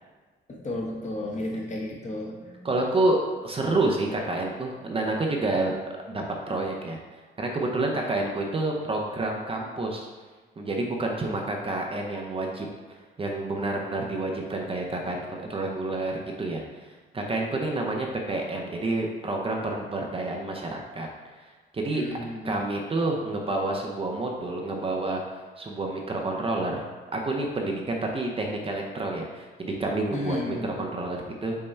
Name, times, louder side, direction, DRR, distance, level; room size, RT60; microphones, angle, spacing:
voice 1, 0.5-2.7 21.9-22.6 30.1-30.8, left 1 dB, 35° left, -1 dB, 1.0 m, -33 dB
voice 2, 2.6-5.7 6.1-7.0 7.4-10.1 10.6-21.1 21.4-22.0 22.4-26.8 27.1-31.6, right 2 dB, 30° right, 0 dB, 0.6 m, -29 dB
5.4 x 2.2 x 4.3 m, 1.4 s
cardioid pair, 90°, 20 cm